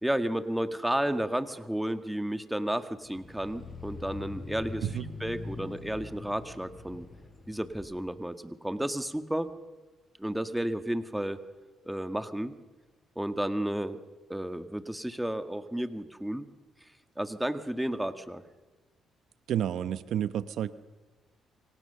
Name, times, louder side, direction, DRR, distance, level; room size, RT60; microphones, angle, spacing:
voice 1, 0.0-4.9 5.2-7.1 7.5-9.5 10.2-11.4 11.8-12.5 13.1-14.0 14.3-16.5 17.2-18.4, right 1 dB, 5° right, 9 dB, 1.6 m, -32 dB
sound 1, 3.0-8.0, left 3 dB, 30° left, 7.2 m, -43 dB
voice 2, 19.5-20.7, right 10 dB, 70° right, 13 dB, 0.9 m, -30 dB
28.0 x 24.5 x 6.8 m, 1.2 s
cardioid pair, 90°, 0 cm